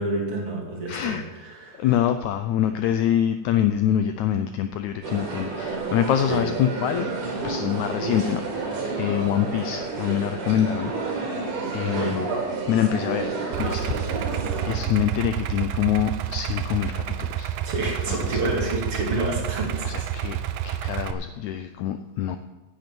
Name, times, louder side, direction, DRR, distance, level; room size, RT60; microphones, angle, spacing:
voice 1, 0.0-2.0 6.3-6.5 11.8-12.2 17.6-20.1, right 1 dB, 45° right, -2 dB, 3.3 m, -29 dB
voice 2, 0.9-1.2 1.8-7.1 7.4-11.4 11.7-12.3 12.7-14.4 14.7-17.5 18.1-18.4 19.8-20.4 20.6-22.4, left 10 dB, 80° left, 9 dB, 1.7 m, -25 dB
sound 1, 5.0-14.8, right 3 dB, 70° right, 3.9 m, -30 dB
Idling, 13.5-21.1, right 11 dB, 90° right, 1.4 m, -29 dB
10.5 x 7.8 x 9.1 m, 1.2 s
omnidirectional pair, 3.8 m